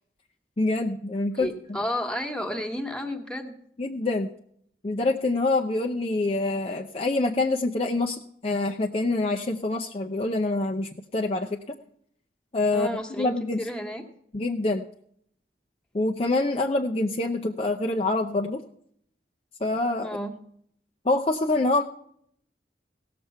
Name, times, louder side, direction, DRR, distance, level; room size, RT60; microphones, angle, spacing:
voice 1, 0.6-1.8 3.8-4.3 4.8-11.7 12.5-12.9 13.2-13.7 14.3-14.8 15.9-18.6 19.6-20.2 21.0-21.8, left 2 dB, 35° left, 2 dB, 0.6 m, -26 dB
voice 2, 1.4-3.6 12.7-14.0 20.0-20.3, equal, 5° left, 4 dB, 1.4 m, -32 dB
17.0 x 6.9 x 5.6 m, 0.69 s
head